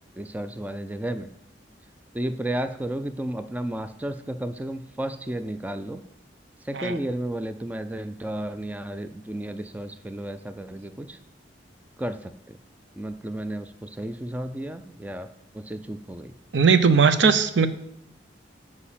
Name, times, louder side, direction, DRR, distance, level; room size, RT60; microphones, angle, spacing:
voice 1, 0.2-1.3 2.1-6.0 6.6-11.2 12.0-12.6 13.0-15.3 15.5-16.3, right 1 dB, 10° right, 10 dB, 0.4 m, -32 dB
voice 2, 16.5-17.7, right 5 dB, 75° right, 11 dB, 0.6 m, -18 dB
8.4 x 4.9 x 7.4 m, 0.75 s
head